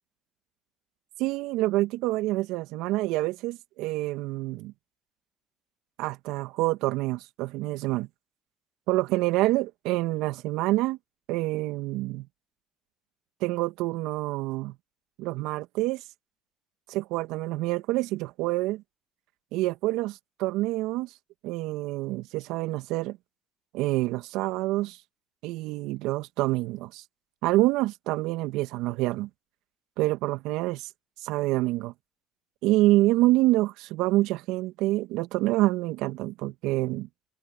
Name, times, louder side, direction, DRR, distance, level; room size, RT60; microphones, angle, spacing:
voice 1, 1.2-4.7 6.0-8.1 8.9-11.0 11.3-12.3 13.4-14.7 15.2-16.0 16.9-18.8 19.5-21.1 21.4-23.2 23.7-25.0 25.4-27.0 27.4-29.3 30.0-30.9 31.2-31.9 32.6-37.1, right 18 dB, 70° right, 1.9 m, -27 dB
hypercardioid pair, 60°, 0 cm